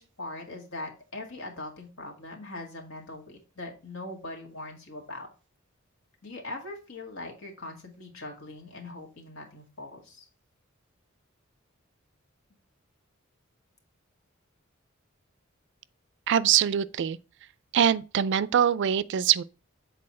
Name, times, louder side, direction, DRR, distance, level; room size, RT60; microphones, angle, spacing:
voice 1, 0.0-5.3 6.2-10.3, left 2 dB, 80° left, 2.0 m, -41 dB
voice 2, 16.3-17.2 17.7-19.4, right 9 dB, 60° right, 0.4 m, -23 dB
7.6 x 4.1 x 4.2 m
head